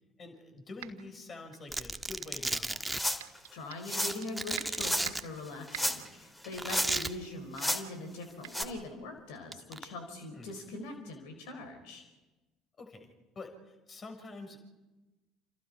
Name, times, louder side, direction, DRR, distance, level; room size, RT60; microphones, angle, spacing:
voice 1, 0.2-2.9 10.3-10.5 12.8-14.6, left 3 dB, 35° left, 5 dB, 6.2 m, -47 dB
sound 1, 0.8-1.1 1.5-2.7 3.2-4.3 4.6-5.3 5.7-6.1 6.5-6.8 7.0-7.3 7.6-7.8 8.4-8.6, right 13 dB, 70° right, 2.0 m, -46 dB
Domestic sounds home sounds, 1.7-3.0 4.1-5.2 6.6-7.1 8.4-8.6 9.5-9.8, right 2 dB, 10° right, 1.4 m, -34 dB
sound 2, 2.9-3.4 3.8-4.2 4.8-5.1 5.7-6.1 6.4-7.1 7.6-7.8 8.5-8.6, left 1 dB, 10° left, 3.2 m, -32 dB
voice 2, 3.5-12.0, left 2 dB, 65° left, 6 dB, 4.4 m, -42 dB
29.5 x 28.0 x 5.0 m, 1.1 s
figure-of-eight pair, 60°, 0 cm